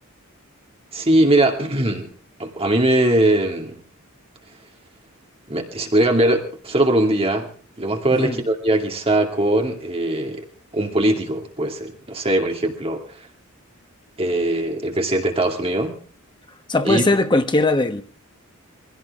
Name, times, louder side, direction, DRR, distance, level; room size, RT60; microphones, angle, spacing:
voice 1, 0.9-2.1 2.4-3.8 5.5-7.5 7.8-10.4 10.7-13.0 14.2-16.0 16.8-17.0, right 1 dB, 25° right, 2.4 m, -20 dB
voice 2, 16.7-18.0, left 2 dB, 20° left, 1.2 m, -19 dB
23.0 x 16.5 x 3.7 m
head